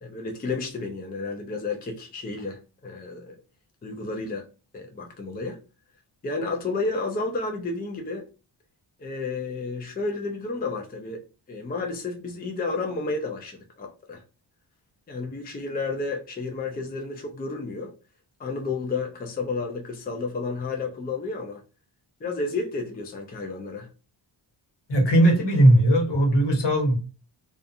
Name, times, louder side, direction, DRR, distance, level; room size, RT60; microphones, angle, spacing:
voice 1, 0.0-3.4 3.8-4.5 4.7-5.6 6.2-8.3 9.0-11.2 11.5-14.2 15.1-17.9 18.4-21.6 22.2-23.9, left 3 dB, 20° left, 0.4 m, -31 dB
voice 2, 24.9-27.0, right 1 dB, 60° left, 1.1 m, -18 dB
2.4 x 2.4 x 2.6 m
cardioid pair, 85°, 48 cm